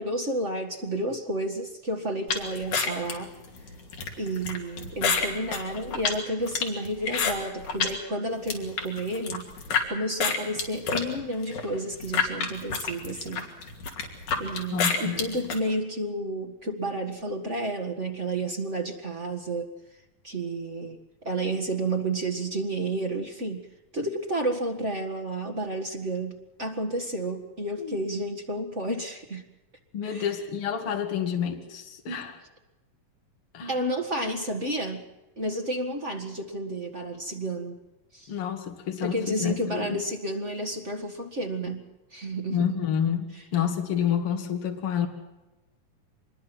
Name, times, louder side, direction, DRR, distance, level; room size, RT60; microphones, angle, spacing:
voice 1, 0.0-3.3 3.6-3.7 4.2-9.4 9.9-13.5 14.4-19.7 20.2-23.7 23.9-29.4 30.0-30.3 33.7-35.1 35.4-37.8 38.1-38.3 39.0-42.8 43.3-43.4, right 1 dB, 30° right, 2 dB, 1.3 m, -31 dB
sound 1, 2.3-8.0 8.3-9.9 10.2-15.6, left 5 dB, 60° left, 4.1 m, -29 dB
voice 2, 14.7-15.2 27.8-28.0 29.9-32.4 33.5-33.7 38.3-40.0 42.5-45.1, left 8 dB, 45° left, 4 dB, 2.9 m, -29 dB
25.0 x 21.5 x 6.1 m, 1.1 s
omnidirectional pair, 4.0 m